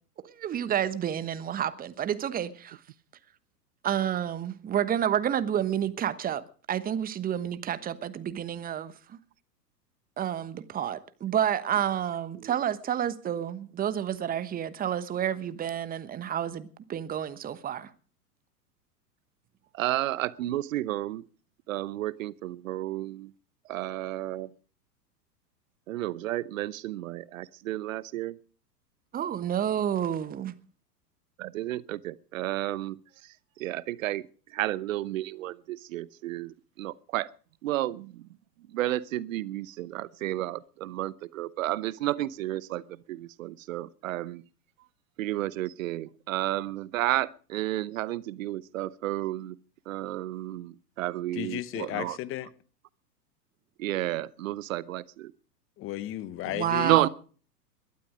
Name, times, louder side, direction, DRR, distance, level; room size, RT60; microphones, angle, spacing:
voice 1, 0.2-2.8 3.8-9.2 10.2-17.9 29.1-30.6 56.5-57.1, right 10 dB, 20° right, 1.1 m, -30 dB
voice 2, 19.7-21.2 21.7-23.3 23.7-24.5 25.9-28.4 31.4-33.0 33.6-34.2 34.5-37.3 37.6-38.3 38.7-44.4 45.2-49.6 49.9-52.2 53.8-55.3 56.8-57.1, right 15 dB, 55° right, 0.9 m, -31 dB
voice 3, 51.3-52.5 55.8-57.0, left 14 dB, 25° left, 1.1 m, -34 dB
20.5 x 12.5 x 5.1 m
figure-of-eight pair, 100°, 49 cm